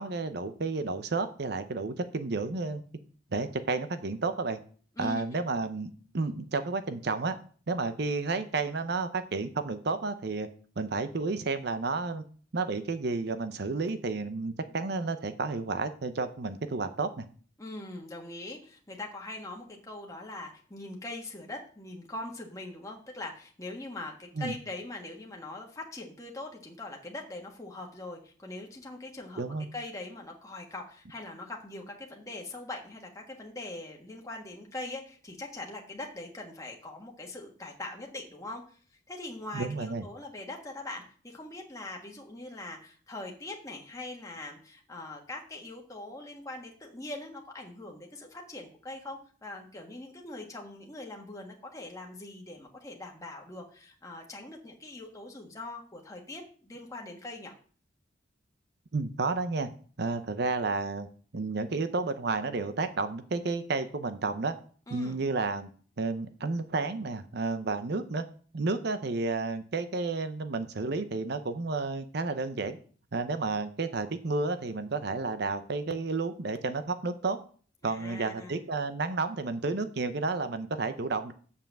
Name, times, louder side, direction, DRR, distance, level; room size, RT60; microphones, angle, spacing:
voice 1, 0.0-2.8 3.3-4.6 5.0-7.4 7.7-10.5 10.8-12.2 12.5-17.3 24.4-24.5 29.4-29.7 39.5-40.0 58.9-59.7 60.0-61.1 61.3-64.5 64.9-65.7 66.0-68.2 68.5-72.8 73.1-77.4 77.8-81.3, right 3 dB, 60° right, 10 dB, 0.7 m, -31 dB
voice 2, 17.6-29.4 29.7-38.8 39.1-57.5 64.9-65.2 77.8-78.6, left 2 dB, 15° left, 0 dB, 1.5 m, -42 dB
7.0 x 5.7 x 7.4 m, 0.44 s
head